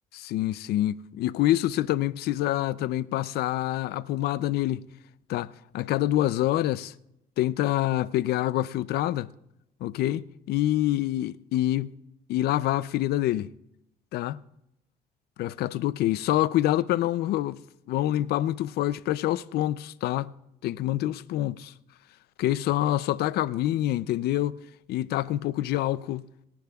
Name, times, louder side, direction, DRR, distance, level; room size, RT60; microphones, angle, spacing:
voice 1, 0.1-4.9 5.3-6.9 7.4-9.3 9.8-11.9 12.3-13.5 14.1-14.4 15.4-17.6 17.9-20.3 20.6-21.7 22.4-24.6 24.9-26.2, left 14 dB, 70° left, 0.5 m, -26 dB
24.0 x 10.5 x 2.4 m
cardioid pair, 110°, 17 cm